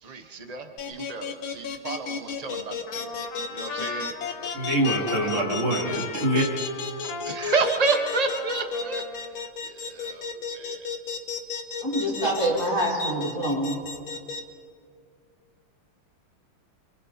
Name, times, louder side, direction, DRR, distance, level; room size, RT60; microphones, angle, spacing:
voice 1, 0.0-3.1 3.5-4.5 4.9-5.4 7.2-9.3 9.6-10.9, right 4 dB, 50° right, 6 dB, 0.4 m, -30 dB
sound 1, 0.8-14.4, left 5 dB, 65° left, 2.0 m, -33 dB
Trumpet, 2.9-9.5, left 5 dB, 85° left, 2.4 m, -38 dB
voice 2, 4.5-6.5, right 1 dB, 70° right, -2 dB, 3.8 m, -25 dB
voice 3, 11.8-13.8, right 1 dB, 10° left, -5 dB, 5.1 m, -26 dB
27.5 x 24.5 x 4.3 m, 2.3 s
omnidirectional pair, 2.4 m